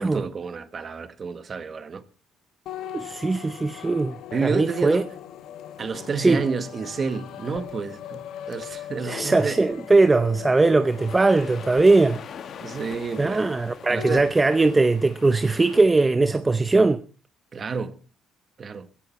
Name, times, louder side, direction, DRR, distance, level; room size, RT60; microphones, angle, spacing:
voice 1, 0.0-2.0 4.3-5.1 5.8-9.6 12.6-13.5 13.9-14.3 17.5-18.0 18.6-18.9, right 5 dB, 30° right, 1.3 m, -30 dB
sound 1, 2.7-14.3, left 11 dB, 70° left, 1.5 m, -40 dB
voice 2, 2.9-4.1 4.4-5.0 6.2-6.4 9.0-12.2 13.2-17.0, right 3 dB, 15° right, 0.7 m, -20 dB
sound 2, 10.8-15.9, left 7 dB, 45° left, 1.5 m, -43 dB
16.0 x 15.5 x 4.2 m
cardioid pair, 140°, 0 cm